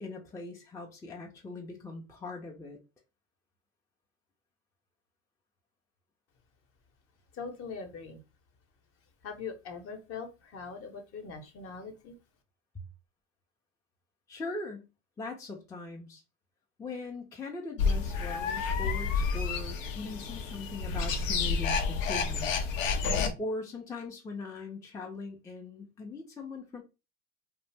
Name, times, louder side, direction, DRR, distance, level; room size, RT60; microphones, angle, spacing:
voice 1, 0.0-2.8 14.3-14.9 15.2-16.2 16.8-22.7 23.4-26.8, left 3 dB, 10° left, 1 dB, 0.4 m, -40 dB
voice 2, 7.3-8.2 9.2-12.2, left 5 dB, 40° left, 5 dB, 0.8 m, -41 dB
sound 1, 17.8-23.3, left 5 dB, 80° left, 0.6 m, -30 dB
2.4 x 2.0 x 3.3 m, 0.28 s
hypercardioid pair, 90°, 38 cm